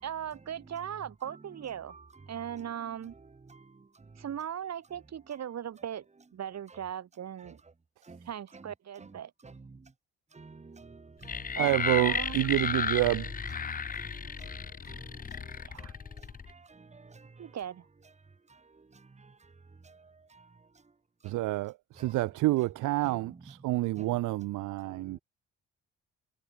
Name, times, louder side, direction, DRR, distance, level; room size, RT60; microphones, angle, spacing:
voice 1, 0.0-2.0 2.3-3.1 4.2-6.1 6.3-7.6 8.2-9.3 11.5-12.5 15.6-15.9 17.4-17.9, right 9 dB, 60° right, 4.7 m, -39 dB
voice 2, 10.3-11.6 13.9-15.9 16.2-17.3 19.2-19.3 19.8-20.5 22.0-22.1 23.0-23.2 24.0-24.1 24.8-25.2, right 4 dB, 20° right, 2.4 m, -52 dB
sound 1, 11.2-16.5, left 6 dB, 30° left, 0.7 m, -34 dB
voice 3, 11.6-13.3 21.2-25.2, right 18 dB, 85° right, 0.7 m, -28 dB
cardioid pair, 90°, 30 cm